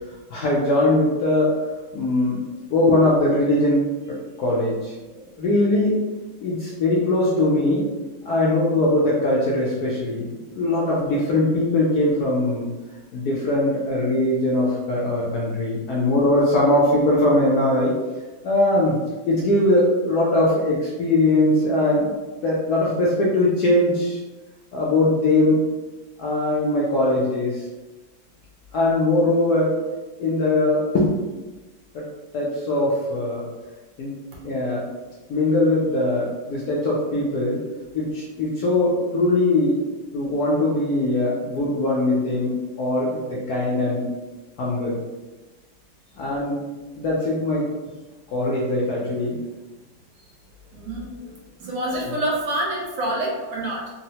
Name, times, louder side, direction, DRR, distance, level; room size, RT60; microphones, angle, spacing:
voice 1, 0.3-1.5 1.9-4.9 5.4-6.0 6.4-7.8 8.2-10.3 10.5-12.7 13.1-18.0 18.4-19.0 19.3-22.1 22.4-24.2 24.7-25.6 26.2-27.7 28.7-29.8 30.2-31.1 31.9-32.1 32.3-33.4 34.0-34.2 34.4-34.9 35.3-37.6 37.9-39.8 40.1-44.1 44.6-44.9 46.2-46.6 47.0-47.7 48.3-49.4 52.0-52.2, left 1 dB, 70° left, -5 dB, 0.9 m, -21 dB
voice 2, 50.7-53.9, right 1 dB, 70° right, -3 dB, 1.1 m, -27 dB
3.6 x 2.0 x 2.7 m, 1.2 s
omnidirectional pair, 2.1 m